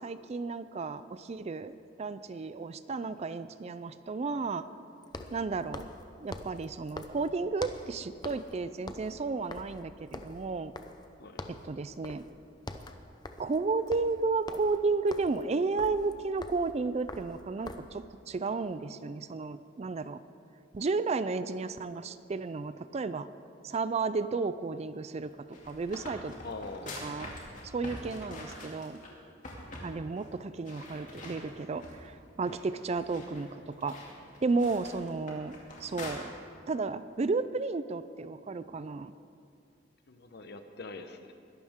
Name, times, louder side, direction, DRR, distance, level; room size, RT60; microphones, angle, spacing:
voice 1, 0.0-1.7 2.0-4.6 5.3-5.8 6.2-10.7 11.5-12.2 13.4-20.2 20.7-23.3 23.6-25.3 25.7-26.3 27.0-27.3 27.6-29.0 29.8-34.0 34.4-35.5 35.8-36.3 36.7-39.1, right 4 dB, 35° right, 14 dB, 0.4 m, -33 dB
sound 1, 1.7-1.8 5.0-7.9 8.2-8.6 8.8-11.1 11.4-11.7 12.0-12.3 12.6-18.0, left 2 dB, 25° left, 0.7 m, -44 dB
sound 2, 25.3-29.1 29.4-29.9 30.2-30.3 30.6-32.1 32.5-36.1, left 2 dB, 45° left, 2.5 m, -45 dB
voice 2, 26.4-27.1 40.1-41.3, left 3 dB, 60° left, 7 dB, 0.9 m, -44 dB
21.0 x 12.0 x 3.7 m, 2.4 s
head